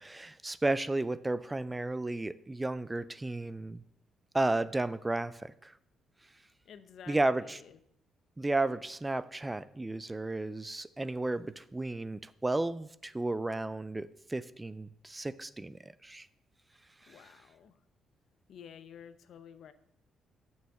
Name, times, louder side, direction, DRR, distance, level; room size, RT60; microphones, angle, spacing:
voice 1, 0.0-3.8 4.3-5.7 7.1-7.6 8.4-16.3 17.1-17.2, right 2 dB, 15° right, 15 dB, 0.4 m, -33 dB
voice 2, 6.6-7.8 17.1-17.8 18.5-19.7, left 8 dB, 70° left, 12 dB, 0.7 m, -51 dB
6.3 x 5.6 x 7.0 m, 0.72 s
cardioid pair, 90°, 0 cm